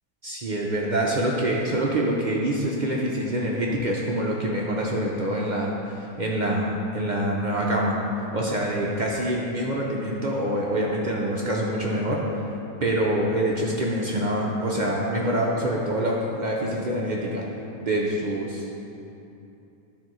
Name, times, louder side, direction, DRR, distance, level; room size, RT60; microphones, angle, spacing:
voice 1, 0.2-8.0 8.3-12.4 12.8-17.4 17.8-18.7, right 1 dB, 70° right, -3 dB, 0.4 m, -25 dB
11.5 x 4.3 x 3.1 m, 2.8 s
omnidirectional pair, 1.6 m